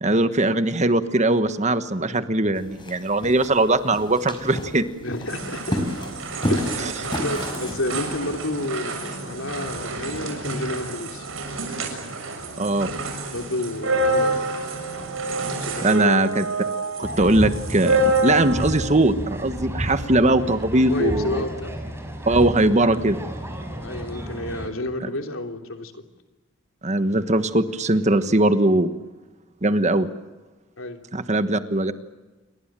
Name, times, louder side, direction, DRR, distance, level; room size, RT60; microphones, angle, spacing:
voice 1, 0.0-4.8 6.8-6.9 12.6-12.9 15.8-16.5 17.0-21.4 22.3-23.2 26.8-28.9 29.6-30.1 31.1-31.9, right 2 dB, 35° right, 10 dB, 1.4 m, -20 dB
sound 1, 2.6-7.9, equal, 25° left, 5.1 m, -31 dB
voice 2, 5.0-5.8 6.5-11.3 13.3-14.4 15.6-15.9 20.8-21.8 23.8-26.0 30.8-31.0, left 2 dB, 85° left, 4 dB, 3.3 m, -30 dB
sound 2, 5.3-18.9, right 2 dB, 75° right, 6.8 m, -27 dB
sound 3, 17.0-24.7, equal, 15° right, 5.0 m, -32 dB
29.0 x 23.5 x 7.6 m, 1.2 s
head